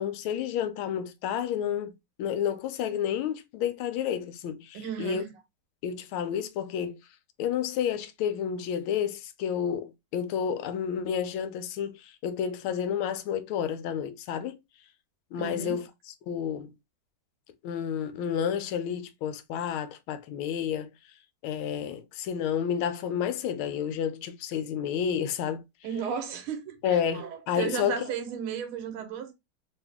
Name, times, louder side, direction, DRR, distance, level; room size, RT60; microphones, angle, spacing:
voice 1, 0.0-5.2 5.8-7.0 7.4-14.6 15.3-15.8 16.3-16.7 17.6-20.9 21.4-25.6 26.8-28.0, left 8 dB, 80° left, 1.3 m, -30 dB
voice 2, 4.7-5.3 15.4-15.8 25.8-29.3, right 7 dB, 85° right, 1.7 m, -34 dB
3.4 x 2.6 x 3.4 m
omnidirectional pair, 2.3 m